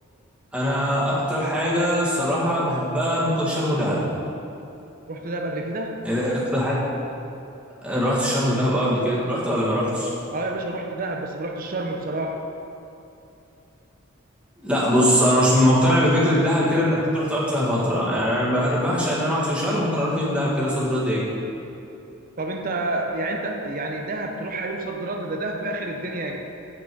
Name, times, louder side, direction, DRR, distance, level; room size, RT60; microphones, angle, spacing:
voice 1, 0.5-4.0 6.0-6.8 7.8-10.1 14.6-21.2, equal, 5° right, -7 dB, 1.8 m, -21 dB
voice 2, 5.1-6.0 10.3-12.4 22.4-26.4, right 2 dB, 45° right, 2 dB, 0.6 m, -29 dB
8.7 x 6.0 x 4.6 m, 2.9 s
head